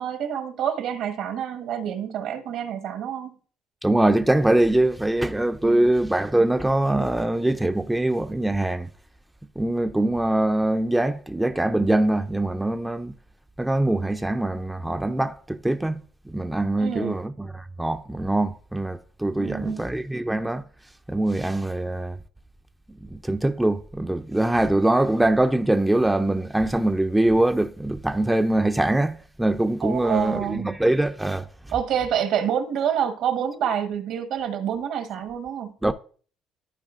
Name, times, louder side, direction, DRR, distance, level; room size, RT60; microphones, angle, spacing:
voice 1, 0.0-3.4 5.6-5.9 16.8-17.2 19.3-19.9 29.8-30.8 31.7-35.7, right 9 dB, 70° right, 1.2 m, -27 dB
voice 2, 3.8-8.9 9.6-13.1 13.6-20.6 21.1-22.2 23.0-31.5 35.8-35.9, right 1 dB, 5° right, 0.4 m, -23 dB
14.0 x 4.7 x 2.5 m
cardioid pair, 110°, 0 cm